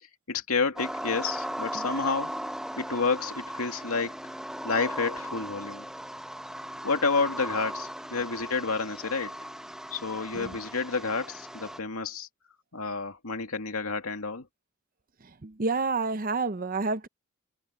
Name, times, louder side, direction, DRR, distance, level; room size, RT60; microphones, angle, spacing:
voice 1, 0.3-2.4 2.8-4.1 4.6-5.8 6.8-9.3 9.9-12.3 12.7-14.5, left 4 dB, 80° left, 2.4 m, -30 dB
sound 1, 0.8-11.8, equal, 5° right, 0.9 m, -37 dB
voice 2, 15.2-17.1, right 4 dB, 40° right, 0.8 m, -29 dB
head